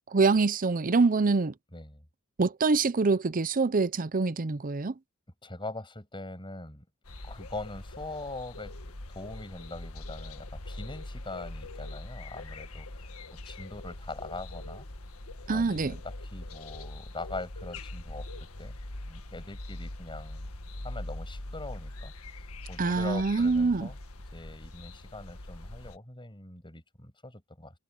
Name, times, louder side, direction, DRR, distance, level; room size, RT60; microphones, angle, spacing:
voice 1, 0.1-1.5 2.4-4.9 15.5-16.0 22.8-23.9, right 4 dB, 40° right, 0.6 m, -25 dB
voice 2, 1.7-2.0 5.4-6.8 7.2-8.7 9.1-14.9 15.5-18.3 18.6-18.8 19.1-20.5 20.8-22.1 22.7-24.0 24.3-27.7, left 2 dB, 20° left, 7.9 m, -42 dB
sound 1, 7.0-26.0, left 1 dB, 70° left, 1.8 m, -42 dB
head